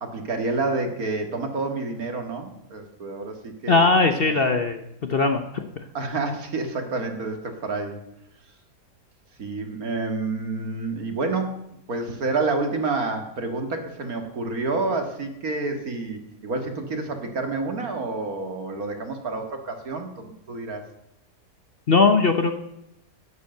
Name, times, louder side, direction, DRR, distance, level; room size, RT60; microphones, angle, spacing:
voice 1, 0.0-3.8 5.9-8.0 9.4-11.6 11.9-20.9, right 3 dB, 65° right, 5 dB, 2.2 m, -29 dB
voice 2, 3.7-5.6 21.9-22.5, left 3 dB, 45° left, 6 dB, 1.0 m, -20 dB
11.0 x 10.5 x 7.8 m, 0.80 s
omnidirectional pair, 1.7 m